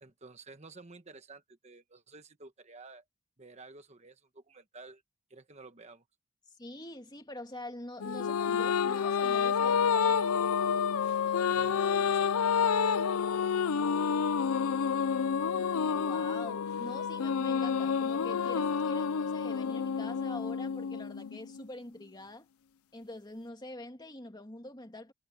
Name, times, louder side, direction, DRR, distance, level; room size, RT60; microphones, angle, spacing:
voice 1, 0.0-3.0 3.4-5.0 5.3-6.0 11.5-12.5, right 3 dB, 30° right, 1.1 m, -52 dB
voice 2, 6.6-10.2 12.9-13.7 15.9-22.5 22.9-25.1, left 1 dB, 20° left, 2.1 m, -45 dB
sound 1, 8.0-21.6, left 6 dB, 80° left, 0.5 m, -29 dB
head